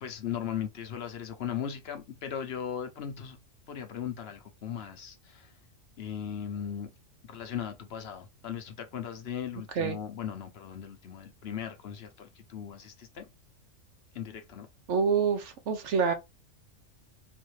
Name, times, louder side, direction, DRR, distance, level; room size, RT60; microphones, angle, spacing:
voice 1, 0.0-3.4 3.7-5.5 6.0-6.9 7.2-13.3 14.1-14.7, left 8 dB, 60° left, 0.9 m, -38 dB
voice 2, 14.9-16.1, right 6 dB, 65° right, 1.0 m, -26 dB
4.0 x 2.6 x 3.1 m
omnidirectional pair, 1.3 m